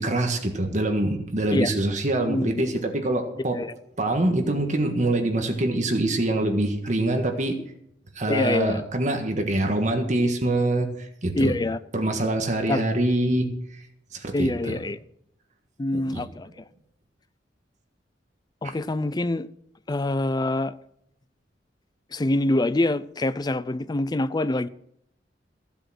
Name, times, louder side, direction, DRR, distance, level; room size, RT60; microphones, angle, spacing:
voice 1, 0.0-3.6 4.0-7.6 8.1-11.6 11.9-13.5 14.1-14.8 15.9-16.2 18.6-18.7, right 1 dB, 45° right, 1.6 m, -25 dB
voice 2, 2.3-2.6 3.5-3.7 8.3-8.8 11.4-11.8 12.7-12.8 14.3-15.0 15.8-16.5 18.6-19.5 19.9-20.7 22.1-24.7, left 2 dB, 25° left, 0.5 m, -25 dB
15.5 x 7.8 x 6.3 m
head